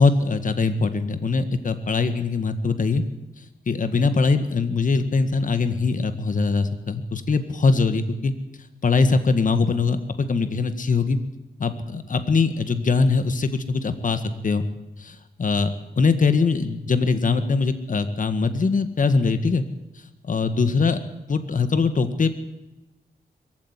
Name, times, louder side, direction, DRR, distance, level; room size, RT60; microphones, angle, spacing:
voice 1, 0.0-3.0 3.7-8.3 8.8-11.2 11.6-14.6 15.0-15.7 16.0-19.6 20.2-21.0 21.3-22.3, left 4 dB, 50° left, 10 dB, 1.8 m, -22 dB
22.5 x 15.5 x 9.8 m, 0.96 s
wide cardioid pair, 120°, 17 cm